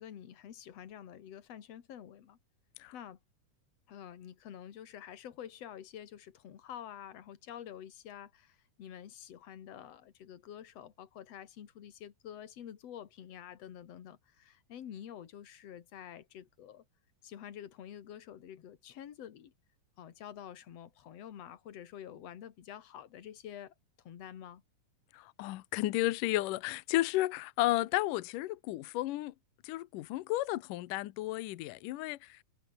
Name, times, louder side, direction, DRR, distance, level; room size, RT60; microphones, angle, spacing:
voice 1, 0.0-2.4 2.9-3.2 3.9-16.8 17.2-19.5 20.0-24.6, left 10 dB, 50° left, 2.6 m, -48 dB
voice 2, 25.1-29.3 29.6-32.4, left 17 dB, 75° left, 2.3 m, -33 dB
omnidirectional pair, 4.0 m